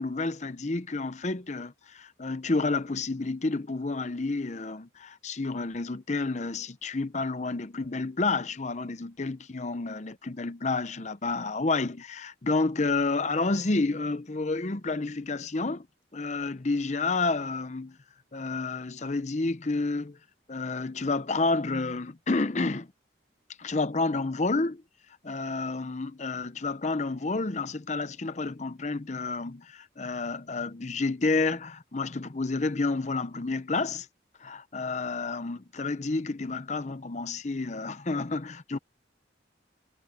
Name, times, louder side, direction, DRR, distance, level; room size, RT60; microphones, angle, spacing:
voice 1, 0.0-15.9 16.1-18.0 18.3-20.2 20.5-22.9 23.6-24.8 25.2-34.1 34.4-38.8, left 3 dB, 35° left, 0.7 m, -30 dB
head